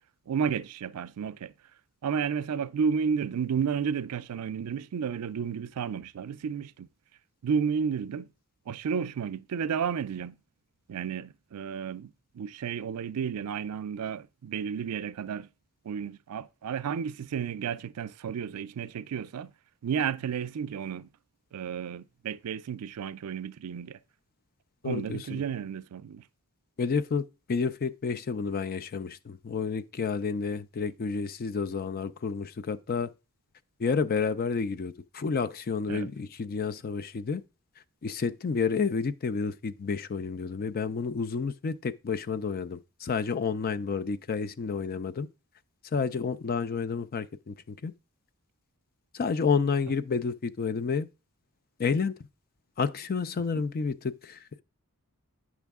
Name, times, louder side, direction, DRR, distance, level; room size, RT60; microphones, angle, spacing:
voice 1, 0.3-1.5 2.0-6.9 7.4-8.3 8.7-10.4 10.9-15.5 15.8-19.5 19.8-21.1 21.5-24.0 24.8-26.2 35.9-36.1 53.5-53.6, right 7 dB, 85° right, 0.4 m, -32 dB
voice 2, 24.8-25.4 26.8-33.1 33.8-37.4 38.0-45.3 45.9-47.9 49.1-51.1 51.8-52.2 52.8-54.6, left 5 dB, 40° left, 0.4 m, -30 dB
9.2 x 6.1 x 3.5 m
head